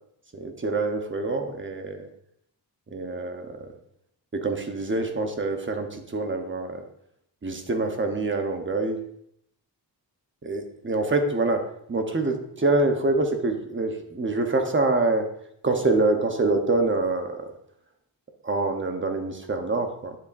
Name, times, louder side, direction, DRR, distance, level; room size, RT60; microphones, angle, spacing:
voice 1, 0.3-2.1 2.9-3.6 4.3-6.8 7.4-9.0 10.4-15.3 15.6-17.4 18.4-20.2, right 2 dB, 30° right, 5 dB, 1.0 m, -25 dB
10.0 x 7.5 x 2.6 m, 0.72 s
wide cardioid pair, 140°, 41 cm